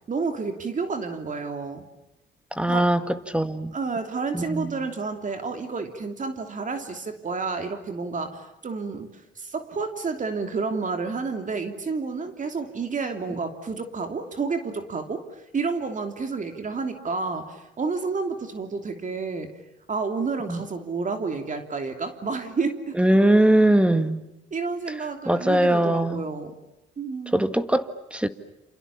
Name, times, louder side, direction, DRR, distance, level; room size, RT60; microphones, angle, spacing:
voice 1, 0.1-1.8 2.7-2.9 3.7-19.5 19.9-23.0 24.5-26.5 27.0-27.5, right 4 dB, 40° right, 6 dB, 3.0 m, -30 dB
voice 2, 2.6-3.7 4.3-4.8 20.5-20.6 23.0-24.2 25.3-26.2 27.3-28.3, right 1 dB, 5° right, 10 dB, 1.9 m, -21 dB
28.5 x 28.0 x 7.2 m, 0.92 s
cardioid pair, 90°, 20 cm